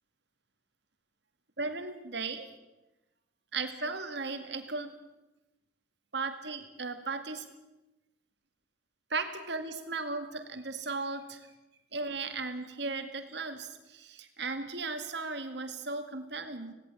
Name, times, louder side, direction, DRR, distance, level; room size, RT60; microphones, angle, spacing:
voice 1, 1.6-2.5 3.5-4.9 6.1-7.5 9.1-11.5 11.9-16.7, right 3 dB, 65° right, 7 dB, 2.1 m, -36 dB
17.5 x 17.5 x 8.7 m, 1.0 s
head